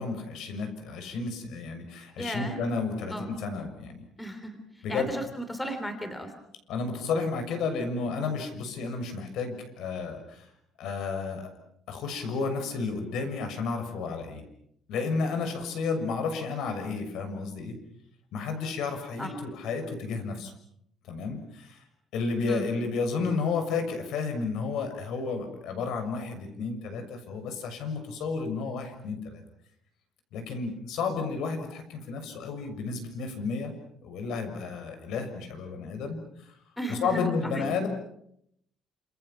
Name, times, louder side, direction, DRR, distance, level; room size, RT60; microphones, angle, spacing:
voice 1, 0.0-4.0 4.8-5.1 6.7-10.5 10.8-11.5 11.9-14.4 14.9-17.8 18.3-20.5 21.0-21.8 22.1-29.4 30.3-33.7 34.0-36.5 36.9-37.9, left 4 dB, 70° left, 6 dB, 6.8 m, -32 dB
voice 2, 2.2-2.6 3.1-3.3 4.2-4.6 4.9-6.3 19.2-19.3 22.5-22.7 36.8-37.7, equal, 5° left, 7 dB, 3.3 m, -35 dB
29.0 x 28.0 x 6.1 m, 0.72 s
cardioid pair, 170°, 0 cm